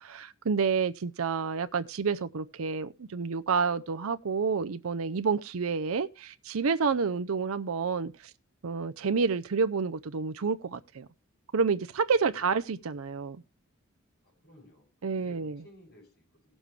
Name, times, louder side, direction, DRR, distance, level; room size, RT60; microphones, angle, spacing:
voice 1, 0.0-8.1 8.6-11.1 11.5-13.4 15.0-15.5, right 5 dB, 80° right, 0.6 m, -29 dB
voice 2, 12.2-12.5 12.8-12.9 14.2-16.6, left 1 dB, 50° left, 7.9 m, -57 dB
17.5 x 7.1 x 3.2 m
head